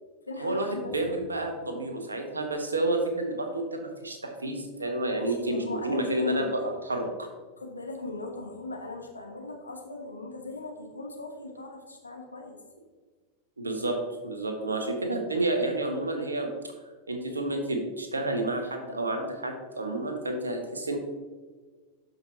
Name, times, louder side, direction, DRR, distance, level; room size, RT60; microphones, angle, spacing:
voice 1, 0.3-1.2 5.1-6.7 7.6-12.6, left 2 dB, 80° left, 2 dB, 1.2 m, -39 dB
voice 2, 0.9-7.3 13.6-14.0 14.2-16.5 17.1-21.0, right 2 dB, 75° right, 4 dB, 1.2 m, -30 dB
12.0 x 5.2 x 2.9 m, 1.4 s
figure-of-eight pair, 90°, 0 cm